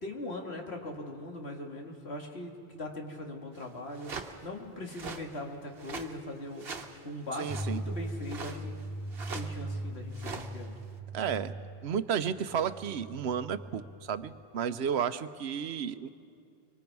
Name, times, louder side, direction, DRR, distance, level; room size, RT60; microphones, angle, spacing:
voice 1, 0.0-8.8 9.2-10.8, left 1 dB, 80° left, 1 dB, 2.3 m, -40 dB
sound 1, 3.6-3.7 4.0-4.3 4.9-5.2 5.8-6.1 6.6-7.0 7.3-7.8 8.2-8.8 9.1-9.7 10.1-10.8, right 5 dB, 65° right, 1.3 m, -42 dB
voice 2, 7.4-7.8 11.1-11.5 11.8-13.8 14.1-16.1, right 7 dB, 85° right, 12 dB, 1.0 m, -32 dB
sound 2, 7.5-14.3, right 1 dB, 5° right, 6.3 m, -40 dB
24.5 x 24.0 x 4.7 m, 2.4 s
omnidirectional pair, 1.1 m